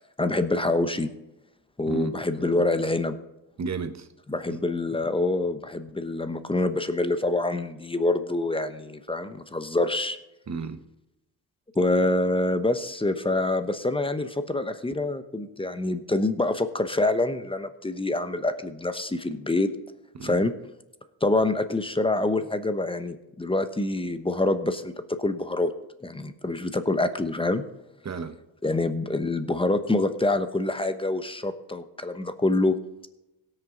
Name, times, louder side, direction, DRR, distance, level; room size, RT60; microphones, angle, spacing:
voice 1, 0.2-1.1 1.8-3.2 4.3-10.2 11.7-19.7 20.2-20.5 21.2-24.9 25.2-25.7 26.0-27.6 28.6-32.7, left 2 dB, 10° left, 10 dB, 1.0 m, -26 dB
voice 2, 1.9-2.2 3.6-4.1 4.5-4.6 10.5-10.8 20.1-20.4 28.0-28.4, right 5 dB, 35° right, 9 dB, 1.4 m, -32 dB
17.5 x 6.6 x 4.0 m, 0.94 s
cardioid pair, 90°, 46 cm